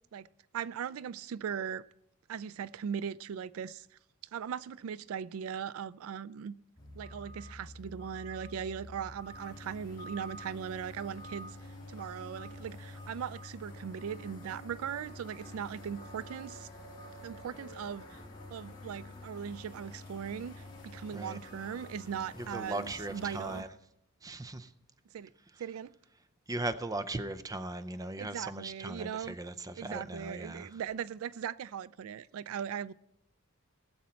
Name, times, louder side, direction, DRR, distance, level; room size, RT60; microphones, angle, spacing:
voice 1, 0.5-1.8 2.3-3.9 4.3-6.5 6.9-11.6 11.9-16.7 17.2-18.2 18.5-23.6 25.1-25.3 25.6-25.9 28.2-29.4 29.8-32.9, right 8 dB, 75° right, 0.3 m, -39 dB
sound 1, 6.8-23.6, left 1 dB, 20° left, 2.7 m, -48 dB
voice 2, 22.4-23.7 24.2-24.7 26.5-30.8, right 2 dB, 15° right, 0.5 m, -38 dB
19.0 x 7.4 x 4.3 m
head